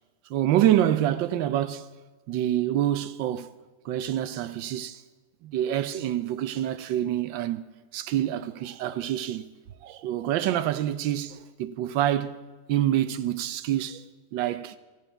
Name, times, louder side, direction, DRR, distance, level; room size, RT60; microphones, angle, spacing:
voice 1, 0.3-1.9 2.3-3.5 3.8-5.0 5.4-7.6 7.9-9.5 9.8-12.4 12.7-14.0 14.3-14.8, right 12 dB, 85° right, 1.4 m, -26 dB
15.0 x 7.9 x 9.2 m
omnidirectional pair, 2.0 m